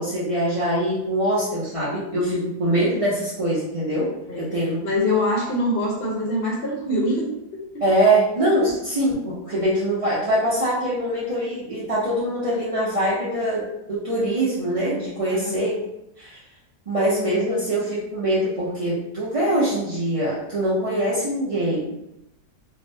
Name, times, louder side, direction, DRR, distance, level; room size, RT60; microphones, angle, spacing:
voice 1, 0.0-4.8 7.8-15.7 16.2-16.4 16.9-22.0, right 1 dB, 55° right, -10 dB, 0.3 m, -23 dB
voice 2, 4.8-7.3 15.3-15.6, left 1 dB, 50° left, -3 dB, 0.8 m, -24 dB
3.8 x 2.1 x 2.7 m, 0.85 s
omnidirectional pair, 1.8 m